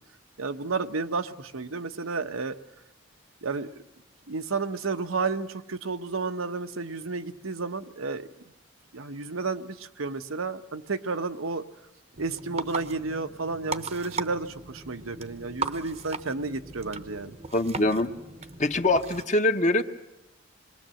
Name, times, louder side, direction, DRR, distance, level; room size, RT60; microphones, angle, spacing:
voice 1, 0.4-2.6 3.4-3.7 4.3-8.3 8.9-11.7 12.2-17.4, right 4 dB, 90° right, 8 dB, 1.0 m, -31 dB
sound 1, 12.1-19.2, right 4 dB, 30° right, 0.8 m, -37 dB
voice 2, 17.5-18.1 18.6-19.8, left 2 dB, 35° left, 7 dB, 1.1 m, -23 dB
27.0 x 21.5 x 7.7 m, 0.91 s
head